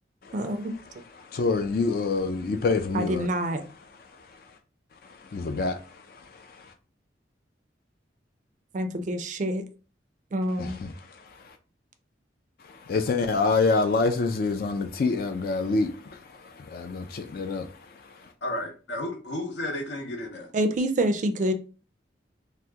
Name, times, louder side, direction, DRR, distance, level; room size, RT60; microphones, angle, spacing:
voice 1, 0.3-0.7 2.9-3.6 8.7-9.6 10.3-10.8 20.5-21.5, right 1 dB, 40° right, 0.4 m, -26 dB
voice 2, 1.2-3.3 4.0-4.3 5.0-6.7 10.6-11.6 12.6-18.3, left 3 dB, 55° left, 0.3 m, -27 dB
voice 3, 18.4-20.5, left 1 dB, 75° left, 0.7 m, -33 dB
2.8 x 2.1 x 3.4 m
head